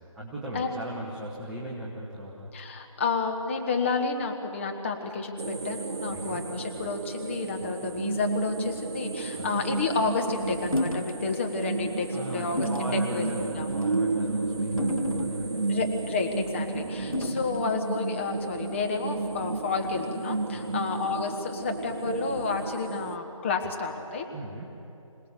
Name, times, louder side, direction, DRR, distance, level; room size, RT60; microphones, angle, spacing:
voice 1, 0.0-2.5 6.1-6.4 7.8-7.9 9.3-9.5 12.1-15.7 17.0-17.1 20.6-20.8 24.3-24.7, right 1 dB, ahead, -7 dB, 0.8 m, -38 dB
voice 2, 2.5-13.7 15.7-24.3, left 4 dB, 20° left, 3 dB, 1.4 m, -30 dB
sound 1, 5.4-23.2, right 3 dB, 50° right, 0.7 m, -32 dB
sound 2, 10.7-11.2 11.6-11.8 12.6-12.9 13.7-14.0 14.8-15.7 17.1-17.6, left 1 dB, 90° left, 1.3 m, -31 dB
26.0 x 18.5 x 7.0 m, 2.9 s
figure-of-eight pair, 155°, 17 cm